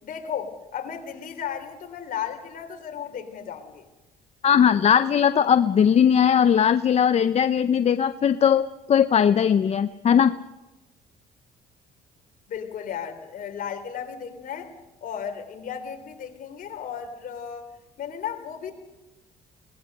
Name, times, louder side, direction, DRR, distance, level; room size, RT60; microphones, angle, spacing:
voice 1, 0.0-3.9 12.5-14.7 15.0-17.7 18.0-18.7, left 8 dB, 55° left, 6 dB, 3.4 m, -34 dB
voice 2, 4.4-10.3, left 8 dB, 40° left, 12 dB, 0.6 m, -19 dB
23.5 x 18.5 x 6.6 m, 1.0 s
cardioid pair, 110°, 17 cm